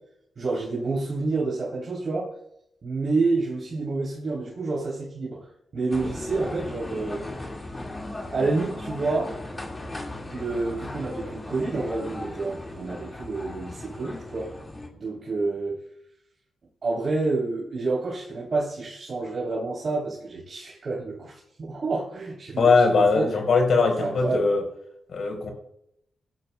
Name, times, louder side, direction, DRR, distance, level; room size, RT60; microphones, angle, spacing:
voice 1, 0.4-2.3 2.8-5.4 5.7-7.2 8.3-9.4 10.3-14.5 15.0-15.8 16.8-23.3 24.0-24.5, right 3 dB, 45° right, -5 dB, 3.3 m, -28 dB
sound 1, 5.9-14.9, left 2 dB, 20° left, 2.0 m, -37 dB
voice 2, 22.6-24.6 25.1-25.5, left 4 dB, 55° left, 3 dB, 4.0 m, -20 dB
17.5 x 12.0 x 2.3 m, 0.76 s
cardioid pair, 120°, 0 cm